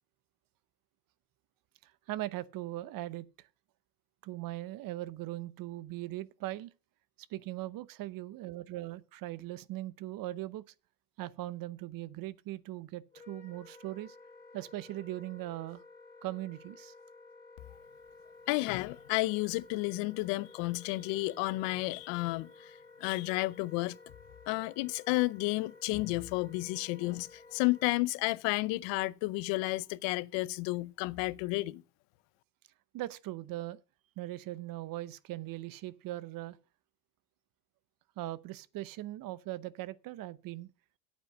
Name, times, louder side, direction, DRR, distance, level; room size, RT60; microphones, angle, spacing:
voice 1, 1.8-3.5 4.2-6.7 7.3-10.6 11.2-14.2 14.5-15.8 16.2-16.9 32.9-33.8 34.2-36.6 38.2-40.7, right 16 dB, 45° right, 0.7 m, -40 dB
Wind instrument woodwind instrument, 13.1-28.1, left 4 dB, 5° left, 3.1 m, -55 dB
voice 2, 18.5-24.0 24.5-31.8, left 21 dB, 65° left, 0.7 m, -32 dB
9.0 x 8.4 x 5.4 m
supercardioid pair, 105°, 46 cm